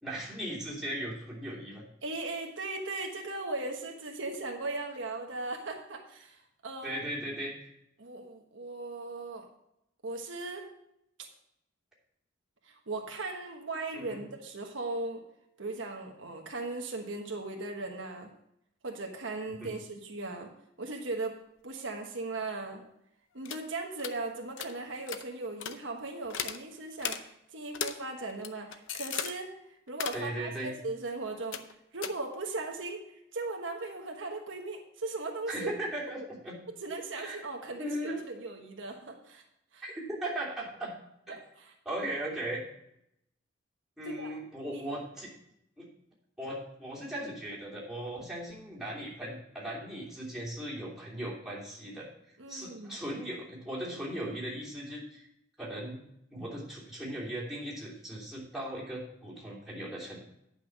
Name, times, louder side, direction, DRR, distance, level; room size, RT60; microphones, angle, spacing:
voice 1, 0.0-1.8 6.8-7.7 13.9-14.2 19.6-19.8 30.1-30.7 35.5-36.6 37.2-37.4 37.8-38.2 39.8-40.9 41.3-41.4 41.8-42.6 44.0-45.3 45.8-45.9 46.4-52.1 52.5-55.3 55.6-56.0 56.3-60.2, right 1 dB, 5° right, -7 dB, 3.1 m, -38 dB
voice 2, 2.0-6.9 8.0-9.5 10.0-10.7 11.2-11.3 12.6-15.2 15.6-18.3 18.8-20.5 20.8-22.8 23.3-29.5 29.9-31.6 31.9-35.7 36.8-39.4 39.7-39.8 41.3-41.7 44.0-44.4 44.7-44.9 52.4-53.0, right 2 dB, 75° right, 2 dB, 1.3 m, -38 dB
sound 1, 23.4-23.6 24.0-24.2 24.6-24.7 25.1-25.2 25.6-25.7 26.3-26.6 27.0-27.2 27.7-28.0 28.3-29.3 29.9-30.3 31.5-31.7 32.0-32.1, left 8 dB, 75° left, 0.7 m, -36 dB
10.0 x 5.8 x 6.0 m, 0.79 s
head